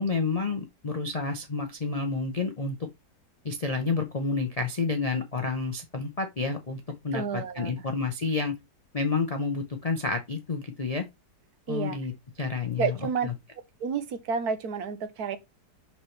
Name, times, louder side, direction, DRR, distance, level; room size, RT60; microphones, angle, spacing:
voice 1, 0.0-2.8 3.4-8.5 8.9-11.1 11.7-12.1 12.4-13.0 13.2-13.3, left 4 dB, 45° left, 0.4 m, -29 dB
voice 2, 7.1-7.7 11.7-12.0 12.8-13.3 13.8-15.4, right 6 dB, 65° right, 1.4 m, -30 dB
6.3 x 5.9 x 3.2 m
omnidirectional pair, 1.8 m